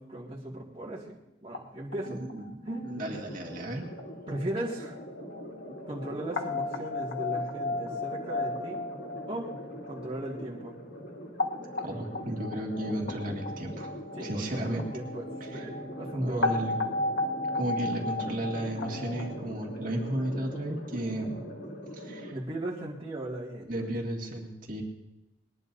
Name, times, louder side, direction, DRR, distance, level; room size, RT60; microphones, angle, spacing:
voice 1, 0.0-2.2 2.6-2.9 4.3-5.0 5.9-8.9 9.3-9.5 9.9-10.8 14.1-16.7 22.3-23.9, right 1 dB, 30° right, -5 dB, 2.1 m, -37 dB
sound 1, 1.5-1.6 1.9-3.1 3.6-3.7 4.0-4.1 4.3-4.4 4.7-4.8 5.0-5.4 5.7-10.7 11.2-19.4, left 2 dB, 60° left, 1.4 m, -34 dB
voice 2, 2.1-3.9 11.8-13.9 14.2-14.8 15.5-15.6 16.1-16.8 17.5-21.4 21.9-22.3 23.7-24.8, right 1 dB, 45° right, -1 dB, 2.1 m, -34 dB
sound 2, 2.9-22.3, equal, 80° left, 3.1 m, -43 dB
22.0 x 20.0 x 2.7 m, 0.97 s
head